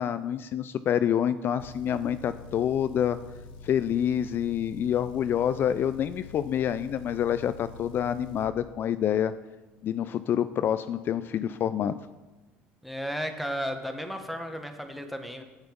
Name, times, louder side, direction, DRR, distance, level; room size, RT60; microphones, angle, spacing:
voice 1, 0.0-3.2 3.6-9.3 9.8-12.0, left 9 dB, 50° left, 12 dB, 0.3 m, -27 dB
Motor vehicle (road) / Engine, 1.6-8.5, left 4 dB, 90° left, 0.7 m, -46 dB
voice 2, 12.8-15.4, equal, ahead, 6 dB, 1.3 m, -34 dB
8.0 x 7.6 x 5.2 m, 1.1 s
supercardioid pair, 80°, 5 cm